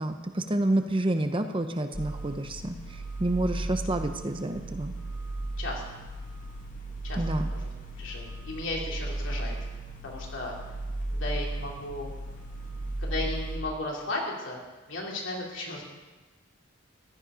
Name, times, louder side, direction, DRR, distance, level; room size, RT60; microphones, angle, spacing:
voice 1, 0.0-2.7 3.2-4.9 7.2-7.5, right 1 dB, 25° right, 7 dB, 0.8 m, -28 dB
sound 1, 1.9-13.6, right 2 dB, 40° left, 2.0 m, -35 dB
voice 2, 5.6-6.0 7.0-7.7 8.0-9.6 10.0-10.5 11.1-12.1 13.0-14.6 14.9-15.8, left 2 dB, 70° left, -2 dB, 3.3 m, -35 dB
15.5 x 11.5 x 5.1 m, 1.2 s
head